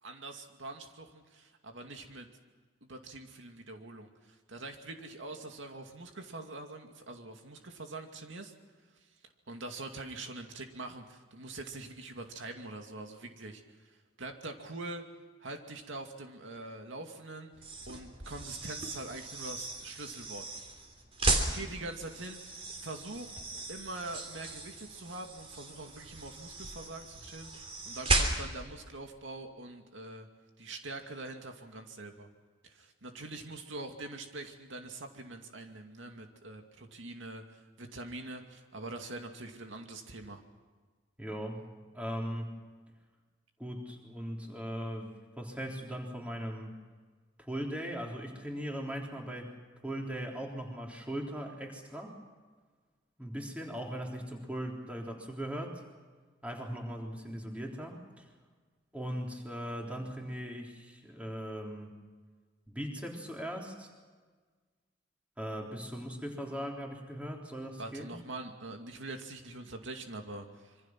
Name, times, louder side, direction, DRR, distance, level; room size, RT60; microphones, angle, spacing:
voice 1, 0.0-2.3 2.8-8.5 9.0-9.1 9.5-15.0 15.4-17.5 17.9-20.4 21.5-23.3 23.7-30.3 30.6-32.3 32.6-40.4 67.8-70.8, right 2 dB, 80° right, 4 dB, 2.5 m, -44 dB
sound 1, 17.5-28.7, right 2 dB, 30° right, 3.3 m, -36 dB
voice 2, 41.2-41.7 41.9-42.5 43.6-46.8 47.4-49.6 49.8-52.2 53.2-55.8 56.4-58.3 58.9-61.9 62.7-63.9 65.4-68.1, equal, 5° right, 0 dB, 3.7 m, -39 dB
26.5 x 24.5 x 6.0 m, 1.4 s
head